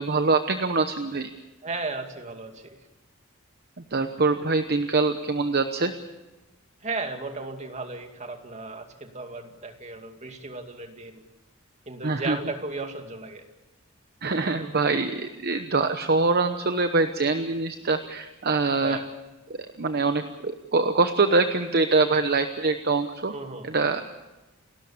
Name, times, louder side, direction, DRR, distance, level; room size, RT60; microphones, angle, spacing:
voice 1, 0.0-1.3 3.9-5.9 12.0-12.4 14.2-19.0 19.5-23.3 23.6-24.1, right 3 dB, 50° right, 8 dB, 1.0 m, -24 dB
voice 2, 1.6-2.8 6.8-11.2 11.9-13.5 18.8-19.1 23.3-23.7, right 3 dB, 35° right, 5 dB, 2.4 m, -35 dB
29.5 x 13.0 x 8.6 m, 1.1 s
head